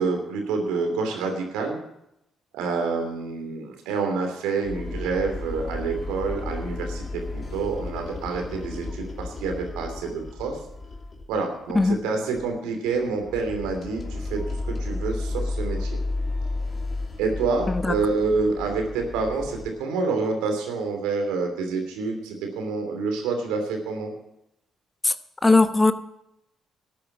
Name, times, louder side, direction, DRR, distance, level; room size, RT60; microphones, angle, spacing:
voice 1, 0.0-1.8 2.5-10.6 11.3-14.4 14.7-16.0 17.2-24.1, right 4 dB, 85° right, 4 dB, 3.1 m, -27 dB
sound 1, 4.6-11.4 11.7-12.0 12.3-12.5 12.9-19.7, left 2 dB, 40° left, 2.9 m, -33 dB
voice 2, 25.4-25.9, left 3 dB, 25° left, 11 dB, 1.1 m, -19 dB
13.0 x 8.7 x 7.4 m, 0.81 s
hypercardioid pair, 50°, 0 cm